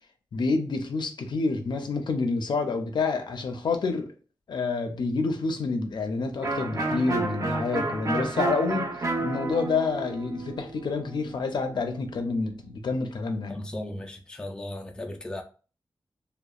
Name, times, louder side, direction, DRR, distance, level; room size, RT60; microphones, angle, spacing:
voice 1, 0.3-4.1 4.5-8.9 9.2-13.6, left 4 dB, 70° left, 0.5 m, -28 dB
Electric guitar, 6.4-12.0, right 2 dB, 40° right, 0.6 m, -31 dB
voice 2, 13.5-15.4, left 1 dB, 10° left, 0.3 m, -36 dB
2.8 x 2.0 x 2.3 m
wide cardioid pair, 105°, 8 cm